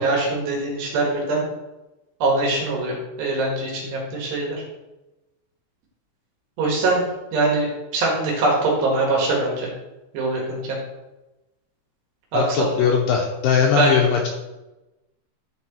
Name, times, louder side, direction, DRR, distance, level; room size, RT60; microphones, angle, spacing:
voice 1, 0.0-1.5 2.2-4.6 6.6-7.0 7.3-9.7 10.1-10.8 12.3-12.9 13.8-14.0, right 2 dB, 65° right, -2 dB, 3.5 m, -22 dB
voice 2, 12.3-14.3, left 7 dB, 85° left, 0 dB, 2.3 m, -20 dB
10.5 x 4.6 x 4.3 m, 1.0 s
omnidirectional pair, 5.6 m